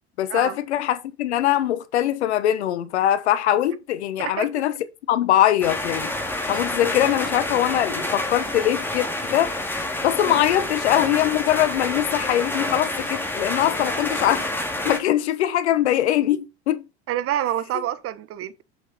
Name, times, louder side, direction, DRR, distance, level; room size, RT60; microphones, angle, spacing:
voice 1, 0.2-4.7 5.1-6.1 6.5-9.5 10.0-14.4 14.8-16.8, left 12 dB, 75° left, 1.3 m, -22 dB
voice 2, 4.2-4.5 10.2-10.4 17.1-18.6, right 12 dB, 40° right, 1.2 m, -27 dB
sound 1, 5.6-15.0, left 1 dB, 5° left, 2.4 m, -28 dB
7.5 x 6.2 x 5.4 m
hypercardioid pair, 80°, 33 cm